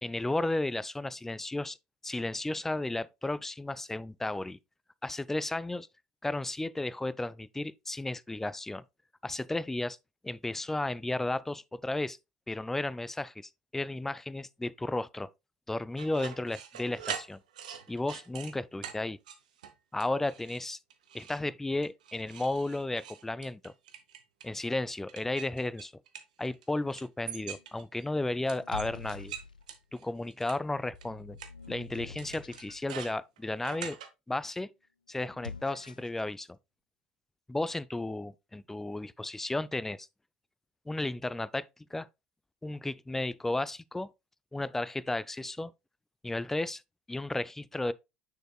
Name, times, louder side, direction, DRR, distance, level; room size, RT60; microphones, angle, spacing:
voice 1, 0.0-1.8 2.0-4.6 5.0-5.9 6.2-8.8 9.2-10.0 10.2-12.2 12.5-15.3 15.7-17.4 17.9-19.2 19.9-20.8 21.1-23.7 24.4-25.9 26.4-29.3 29.9-31.4 31.7-34.0 34.3-34.7 35.1-36.5 37.5-40.1 40.9-41.7 41.9-42.1 42.6-44.1 44.5-45.7 46.2-46.8 47.1-47.9, left 2 dB, 10° left, 0.3 m, -33 dB
sound 1, 16.0-18.5 18.8-19.0 19.3-19.7 20.0-20.6 20.9-21.4 21.8-24.5 25.1-26.6 26.9-28.0 28.5-30.6 31.0-31.1 31.4-31.5 32.2-34.1, right 8 dB, 70° right, 0.8 m, -43 dB
sound 2, 27.2-27.7 28.5-29.8 30.6-32.9 35.2-36.2, left 4 dB, 85° left, 0.3 m, -46 dB
6.6 x 6.3 x 2.2 m
figure-of-eight pair, 65°, 4 cm